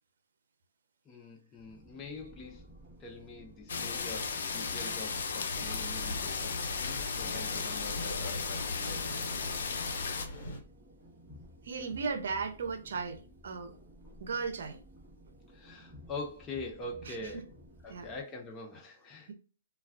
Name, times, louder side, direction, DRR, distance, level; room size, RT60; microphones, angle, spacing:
voice 1, 1.1-2.7 3.0-9.2 15.5-17.5 17.8-19.3, left 2 dB, 20° left, 0.6 m, -44 dB
sound 1, 1.6-18.2, equal, ahead, 1.1 m, -55 dB
sound 2, 3.7-10.3, left 5 dB, 75° left, 0.5 m, -35 dB
Thunder, 5.5-10.6, left 1 dB, 55° left, 1.1 m, -41 dB
voice 2, 11.6-13.7 14.2-14.8 17.1-17.3 17.9-18.1 19.3-19.4, right 5 dB, 70° right, 0.6 m, -36 dB
2.3 x 2.3 x 3.3 m
hypercardioid pair, 150°, 0 cm